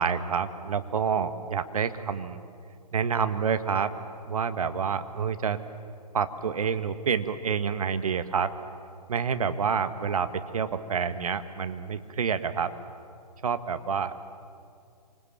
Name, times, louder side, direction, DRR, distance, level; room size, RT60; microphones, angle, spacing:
voice 1, 0.0-2.4 2.9-3.9 4.2-5.6 6.1-8.5 9.1-12.7 13.4-14.2, right 6 dB, 60° right, 10 dB, 1.6 m, -28 dB
27.0 x 26.0 x 7.3 m, 2.5 s
figure-of-eight pair, 130°, 21 cm